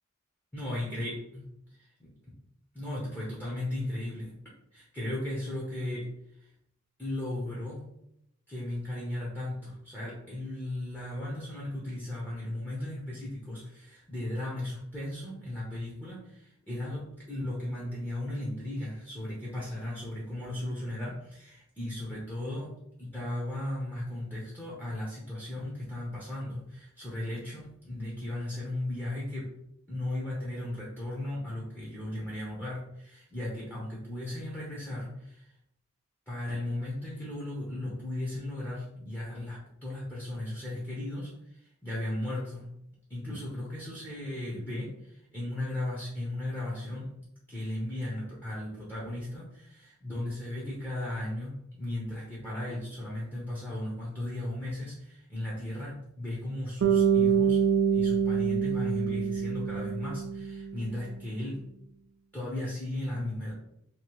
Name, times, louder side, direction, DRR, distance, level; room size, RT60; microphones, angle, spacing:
voice 1, 0.5-1.5 2.0-2.1 2.7-4.3 4.7-6.1 7.0-7.8 8.5-22.7 23.0-29.5 29.9-35.4 36.3-41.3 41.8-42.7 43.1-47.1 47.5-57.6 57.9-61.6 62.3-63.5, left 1 dB, 10° left, -7 dB, 0.7 m, -36 dB
Bass guitar, 56.8-61.1, right 7 dB, 65° right, 0.3 m, -26 dB
2.8 x 2.6 x 3.0 m, 0.77 s
head